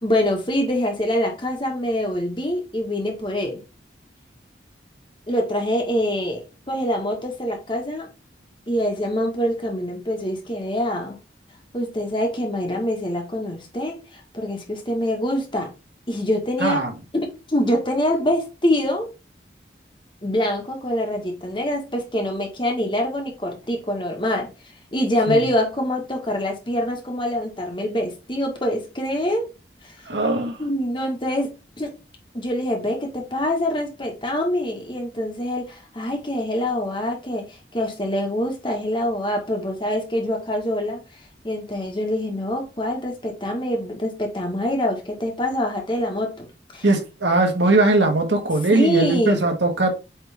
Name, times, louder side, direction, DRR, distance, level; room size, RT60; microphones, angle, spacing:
voice 1, 0.0-3.6 5.3-8.1 8.7-11.2 11.7-15.7 16.1-16.8 17.1-19.1 20.2-24.5 24.9-29.4 29.8-30.1 30.6-31.9 32.3-37.4 37.7-41.0 41.4-46.5 46.7-46.8 48.7-49.4, left 1 dB, 25° left, 1.6 m, -25 dB
voice 2, 16.6-16.9 25.3-25.4 30.0-30.6 46.8-49.9, right 2 dB, 85° right, 1.7 m, -20 dB
8.3 x 3.6 x 3.6 m
head